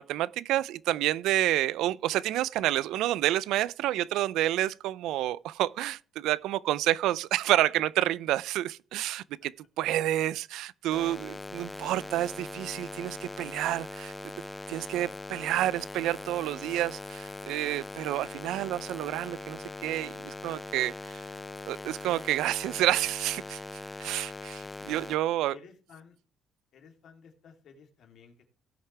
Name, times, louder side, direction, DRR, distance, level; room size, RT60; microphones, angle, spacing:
voice 1, 0.0-9.5 9.8-14.1 14.7-20.9 21.7-23.6 24.0-25.6, right 14 dB, 90° right, 0.4 m, -29 dB
sound 1, 10.9-25.2, left 3 dB, 20° left, 0.4 m, -41 dB
voice 2, 25.3-26.2 26.7-28.5, left 6 dB, 70° left, 2.9 m, -54 dB
17.0 x 6.5 x 3.3 m
cardioid pair, 85°, 0 cm